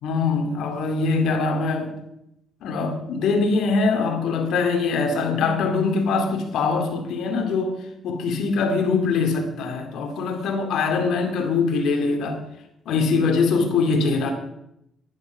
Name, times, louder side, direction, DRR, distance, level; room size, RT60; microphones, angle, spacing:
voice 1, 0.0-2.0 2.6-7.8 8.0-12.4 12.9-14.3, left 4 dB, 75° left, 2.5 m, -23 dB
11.0 x 10.5 x 6.1 m
cardioid pair, 90°, 0 cm